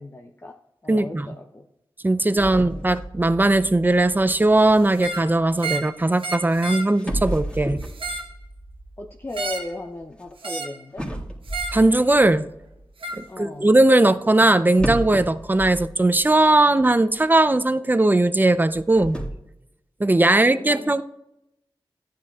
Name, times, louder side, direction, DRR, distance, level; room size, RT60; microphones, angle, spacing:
voice 1, 0.0-1.7 2.3-2.9 9.0-11.1 13.2-13.7 20.1-21.0, left 2 dB, 30° left, 3 dB, 0.7 m, -37 dB
voice 2, 0.9-1.3 2.0-7.8 11.7-12.4 13.1-19.2 20.0-21.0, right 2 dB, 20° right, 13 dB, 0.5 m, -19 dB
sound 1, 2.4-5.5 6.5-6.6 7.0-10.3 11.0-12.9 14.8-16.5 16.8-16.9 17.5-17.6 18.6-19.3, right 1 dB, 10° left, 2.0 m, -33 dB
sound 2, 4.9-5.3 5.6-5.9 6.2-6.9 7.8-8.3 9.3-9.7 10.4-10.8 11.5-11.8 13.0-13.2, right 3 dB, 80° right, 1.1 m, -31 dB
13.5 x 10.0 x 2.4 m, 0.87 s
wide cardioid pair, 60°, 9 cm